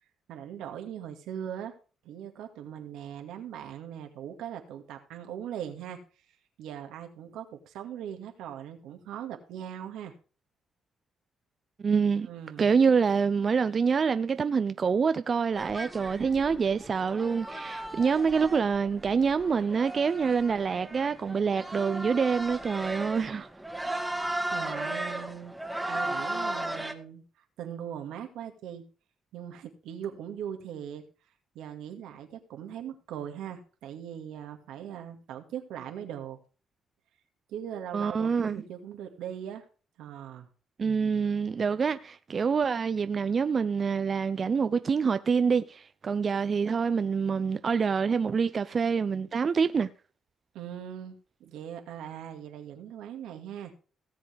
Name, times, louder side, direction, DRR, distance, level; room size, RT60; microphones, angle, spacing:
voice 1, 0.3-1.8 2.0-6.0 6.6-10.1 12.2-12.8 24.5-25.6 25.9-27.2 27.6-28.8 29.3-31.0 31.5-36.4 37.5-39.6 40.0-40.5 50.5-51.2 51.4-53.7, right 9 dB, 90° right, 2.0 m, -40 dB
voice 2, 11.8-12.3 12.6-23.5 37.9-38.6 40.8-49.9, right 5 dB, 40° right, 0.6 m, -26 dB
sound 1, 15.5-26.9, right 1 dB, 5° right, 1.8 m, -36 dB
17.5 x 7.5 x 3.5 m
cardioid pair, 90°, 0 cm